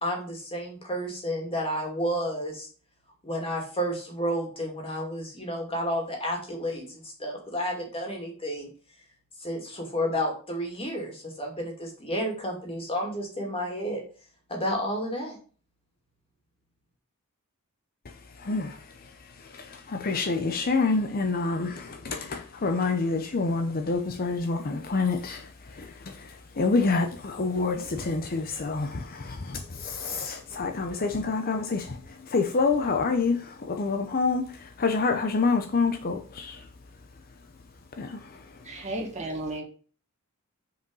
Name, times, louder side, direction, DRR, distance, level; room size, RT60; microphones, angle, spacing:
voice 1, 0.0-2.7 3.2-8.7 9.4-14.0 14.5-15.4, equal, 25° left, 2.5 m, -31 dB
voice 2, 18.4-19.1 19.4-36.7 37.9-38.4, left 4 dB, 40° left, 0.7 m, -28 dB
voice 3, 38.6-39.6, right 1 dB, 30° right, 1.7 m, -33 dB
6.1 x 5.0 x 5.4 m
head